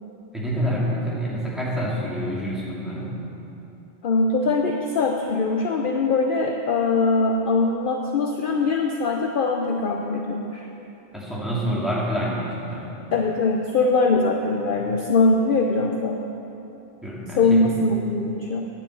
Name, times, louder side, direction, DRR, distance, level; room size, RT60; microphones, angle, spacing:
voice 1, 0.3-3.2 11.1-13.0 17.0-17.7, equal, ahead, -7 dB, 2.5 m, -27 dB
voice 2, 4.0-10.7 13.1-16.2 17.4-18.7, left 3 dB, 55° left, 2 dB, 0.8 m, -22 dB
9.5 x 8.2 x 7.9 m, 2.9 s
omnidirectional pair, 1.2 m